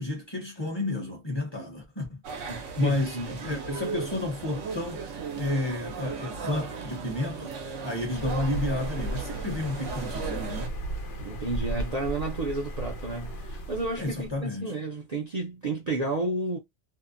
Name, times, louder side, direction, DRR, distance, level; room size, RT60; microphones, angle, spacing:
voice 1, 0.0-5.1 5.3-7.6 7.8-10.7 14.0-14.7, left 2 dB, 25° left, 0.8 m, -31 dB
sound 1, 2.2-10.7, right 5 dB, 85° right, 1.0 m, -36 dB
voice 2, 2.5-3.6 11.2-16.6, right 2 dB, 45° right, 0.5 m, -32 dB
sound 2, 8.1-14.4, right 2 dB, 80° left, 1.0 m, -35 dB
2.7 x 2.0 x 2.5 m
omnidirectional pair, 1.2 m